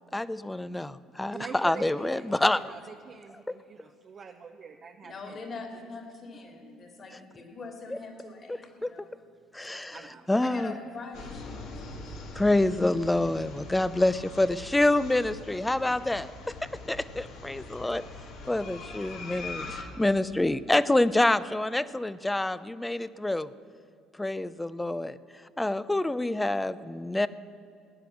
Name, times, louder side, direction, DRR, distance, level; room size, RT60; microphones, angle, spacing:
voice 1, 0.1-2.7 8.8-8.9 9.5-10.0 10.3-10.7 12.4-16.3 16.9-18.0 18.5-23.5 24.2-25.2 25.6-27.3, left 2 dB, 10° left, 17 dB, 0.6 m, -27 dB
voice 2, 1.3-5.4 9.9-10.3, right 5 dB, 45° right, 3 dB, 0.8 m, -45 dB
voice 3, 5.0-9.1 9.9-10.0 10.4-11.7 12.0-12.1, left 3 dB, 45° left, 4 dB, 2.9 m, -43 dB
sound 1, 11.1-19.8, left 3 dB, 70° left, 2.2 m, -42 dB
16.0 x 10.0 x 7.1 m, 2.5 s
supercardioid pair, 70°, 0 cm